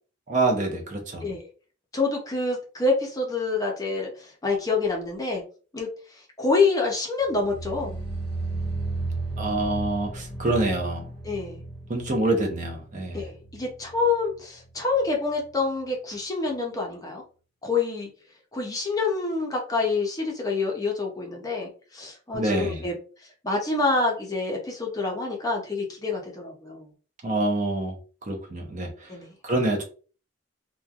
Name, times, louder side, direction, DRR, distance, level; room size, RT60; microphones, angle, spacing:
voice 1, 0.3-1.2 9.4-11.1 11.9-13.2 22.3-22.8 27.2-27.9 28.3-28.9 29.4-29.8, right 2 dB, 40° right, 1 dB, 0.6 m, -26 dB
voice 2, 1.9-5.4 5.7-8.0 11.2-11.6 13.1-17.2 17.6-18.1 18.5-23.0 23.4-26.9 29.1-29.3, left 3 dB, 20° left, 0 dB, 0.6 m, -27 dB
sound 1, 7.2-14.4 14.6-15.1 15.4-15.5, right 3 dB, 5° right, 1.2 m, -34 dB
3.0 x 2.2 x 2.3 m, 0.38 s
head